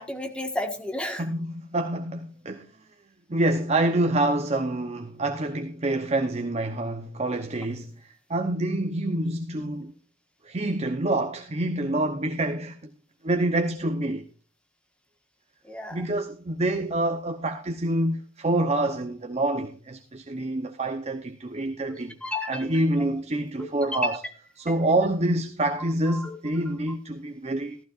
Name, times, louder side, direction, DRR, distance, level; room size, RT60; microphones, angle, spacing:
voice 1, 0.0-1.2 15.6-16.0 21.9-22.7 23.6-24.1 24.7-24.8 26.1-26.4, left 1 dB, 5° left, 1.5 m, -32 dB
voice 2, 1.2-2.6 3.3-9.9 10.4-12.9 13.2-14.3 15.9-22.2 22.5-24.2 24.6-27.8, right 1 dB, 35° right, 0.8 m, -27 dB
15.0 x 14.5 x 2.5 m
head